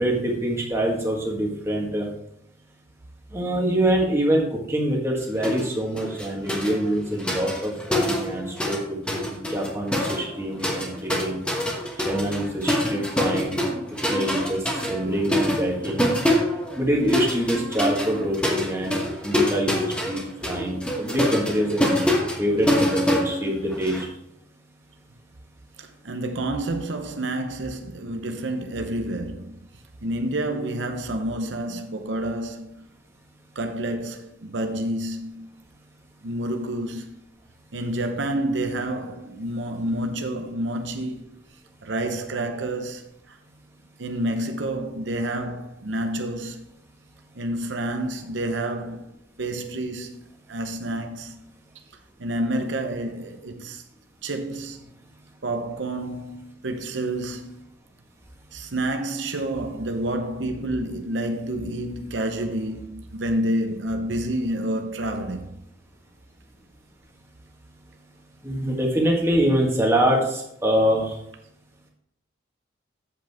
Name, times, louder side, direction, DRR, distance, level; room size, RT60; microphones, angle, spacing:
voice 1, 0.0-2.1 3.3-11.4 12.0-13.7 14.0-16.1 16.8-24.1 68.4-71.2, right 1 dB, 15° right, 1.6 m, -25 dB
sound 1, 5.4-5.7 6.0-8.8 9.1-24.0, left 1 dB, 5° left, 1.3 m, -25 dB
voice 2, 25.8-29.7 30.0-32.8 33.5-35.5 36.2-37.1 37.7-41.3 41.8-43.4 44.0-46.7 47.3-49.1 49.4-51.4 52.2-53.8 54.2-54.9 55.4-57.6 58.5-65.6, right 1 dB, 85° right, 0.8 m, -29 dB
8.2 x 7.7 x 3.5 m
head